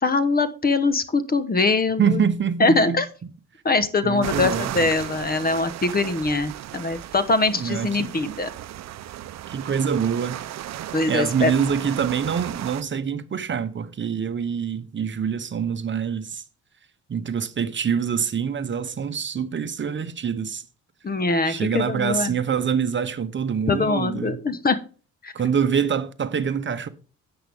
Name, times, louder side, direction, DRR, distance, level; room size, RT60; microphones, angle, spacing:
voice 1, 0.0-2.2 2.6-3.1 3.6-8.5 10.9-11.5 21.0-22.3 23.7-24.8 25.2-25.3, left 3 dB, 30° left, 1.1 m, -22 dB
voice 2, 2.0-3.0 4.0-4.7 7.6-8.1 9.5-10.4 11.1-16.4 17.1-20.6 21.5-24.4 25.3-26.9, right 7 dB, 40° right, 0.9 m, -25 dB
sound 1, 4.2-12.8, right 12 dB, 60° right, 0.6 m, -35 dB
10.5 x 7.8 x 3.6 m
cardioid pair, 90°, 30 cm